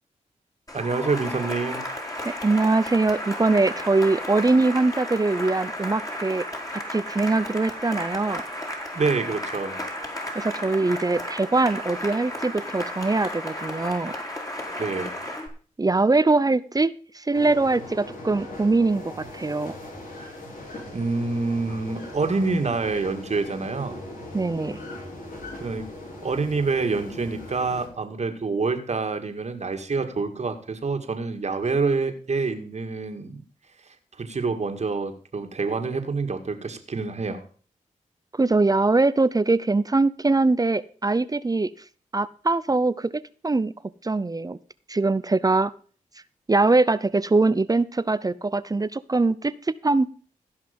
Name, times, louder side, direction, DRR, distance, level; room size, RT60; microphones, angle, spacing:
Cheering / Applause, 0.7-15.5, left 1 dB, 25° left, 3.8 m, -33 dB
voice 1, 0.7-1.8 8.9-9.8 14.8-15.2 20.9-24.0 25.6-25.9 26.2-33.4 34.2-37.4, right 4 dB, 55° right, 7 dB, 1.9 m, -27 dB
voice 2, 2.3-6.4 6.7-8.4 10.3-14.2 15.8-19.0 19.3-19.7 24.3-24.8 38.3-41.7 42.1-43.1 43.4-43.7 44.0-44.6 44.9-45.7 46.5-50.1, right 3 dB, 25° right, 17 dB, 0.6 m, -22 dB
sound 1, 17.3-27.9, left 1 dB, 75° left, 3.7 m, -39 dB
15.5 x 5.8 x 5.3 m, 0.41 s
cardioid pair, 55°, 14 cm